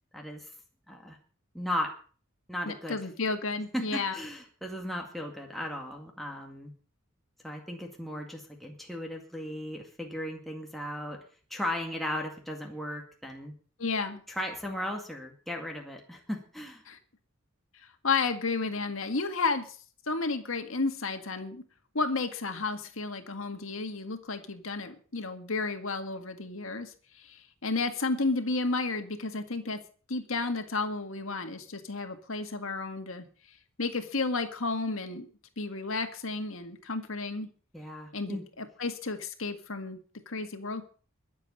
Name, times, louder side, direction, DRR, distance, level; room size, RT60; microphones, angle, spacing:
voice 1, 0.1-0.5 0.9-1.2 1.5-1.9 2.5-3.0 3.7-6.7 7.4-11.2 11.5-13.5 14.3-16.8 37.7-38.4, left 1 dB, ahead, 0 dB, 2.0 m, -36 dB
voice 2, 2.7-4.2 13.8-14.2 16.9-17.0 18.0-19.6 20.1-21.6 21.9-29.8 30.1-33.3 33.8-35.3 35.6-37.5 38.1-40.0 40.3-40.8, left 3 dB, 80° left, 7 dB, 1.9 m, -32 dB
22.0 x 7.6 x 5.5 m, 0.41 s
head